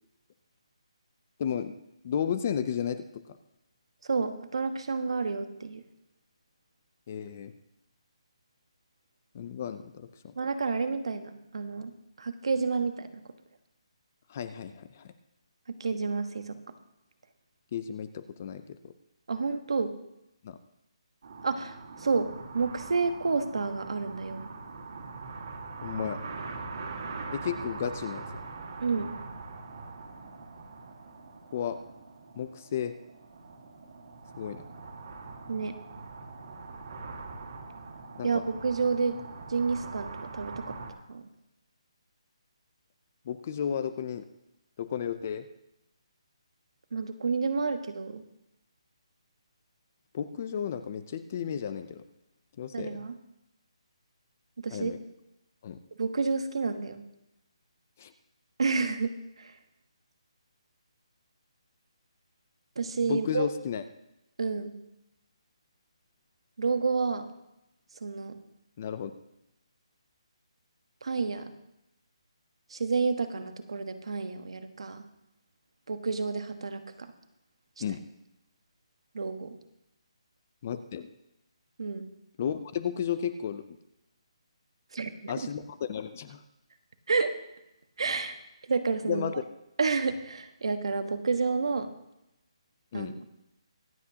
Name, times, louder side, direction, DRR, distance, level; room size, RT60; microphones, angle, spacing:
voice 1, 1.4-1.7 2.0-3.4 7.1-7.5 9.3-10.3 14.3-15.1 17.7-18.9 20.4-20.6 25.8-26.2 27.3-28.4 31.5-31.8 32.3-32.9 34.4-34.6 38.2-38.4 43.3-44.3 44.8-45.5 50.1-52.0 52.6-53.1 54.7-55.0 55.6-55.8 58.0-58.1 63.1-63.8 68.8-69.1 77.8-78.0 80.6-81.1 82.4-83.8 85.3-86.4 89.1-89.4 92.9-93.2, left 8 dB, 20° left, 12 dB, 0.4 m, -33 dB
voice 2, 4.0-5.8 10.3-11.9 12.2-13.2 15.7-16.6 19.3-19.9 21.4-24.4 28.8-29.2 35.5-35.8 38.2-39.2 39.5-40.8 41.1-41.2 46.9-48.2 52.7-53.1 54.6-54.9 56.0-57.0 58.6-59.6 62.7-63.5 64.4-64.8 66.6-67.3 67.9-68.4 71.0-71.5 72.7-75.1 75.9-77.1 79.1-79.5 81.8-82.1 84.9-85.5 87.1-87.4 88.0-88.4 88.6-89.2 89.8-91.9 92.9-93.2, right 4 dB, 60° right, 8 dB, 1.3 m, -30 dB
sound 1, 21.2-40.9, right 4 dB, 45° right, 2.1 m, -42 dB
24.5 x 8.4 x 2.9 m, 0.88 s
hypercardioid pair, 175°, 3 cm